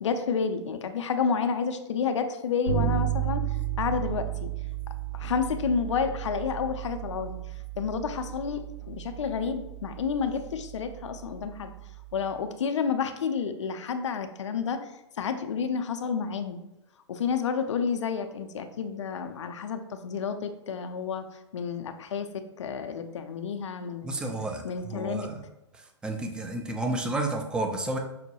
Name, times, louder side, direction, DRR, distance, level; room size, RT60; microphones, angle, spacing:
voice 1, 0.0-3.4 3.8-4.5 5.1-7.4 7.8-11.7 12.1-14.9 15.2-16.6 17.1-21.3 21.5-24.3 24.6-25.3, left 6 dB, 75° left, 7 dB, 0.4 m, -30 dB
Bass guitar, 2.7-12.3, right 11 dB, 80° right, 1.2 m, -34 dB
voice 2, 24.0-25.4 26.0-28.0, right 2 dB, 5° right, 4 dB, 0.3 m, -31 dB
5.4 x 2.1 x 2.8 m, 0.91 s
hypercardioid pair, 115°, 16 cm